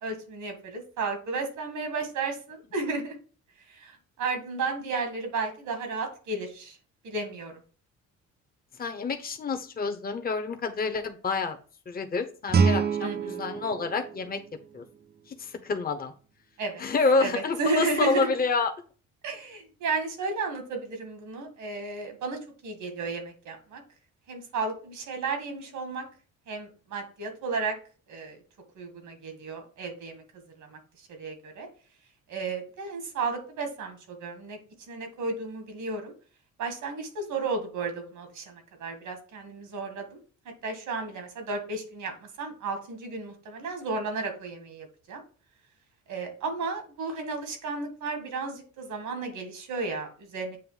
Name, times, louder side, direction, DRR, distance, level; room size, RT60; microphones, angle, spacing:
voice 1, 0.0-3.2 3.7-6.8 7.0-7.5 13.0-13.5 16.6-16.8 17.2-18.3 19.2-23.8 24.3-26.0 26.5-27.7 28.1-28.4 28.8-30.2 30.6-30.8 31.1-31.7 32.3-34.6 34.9-36.1 36.6-40.2 40.6-45.2 46.1-50.6, right 3 dB, 80° right, 5 dB, 1.8 m, -33 dB
voice 2, 8.8-11.6 11.9-14.4 14.7-14.8 15.4-16.1 16.8-18.7, left 4 dB, 30° left, 6 dB, 0.9 m, -28 dB
Guitar, 12.5-15.3, right 5 dB, 35° right, 0.5 m, -27 dB
7.7 x 2.6 x 5.5 m, 0.38 s
cardioid pair, 90°, 30 cm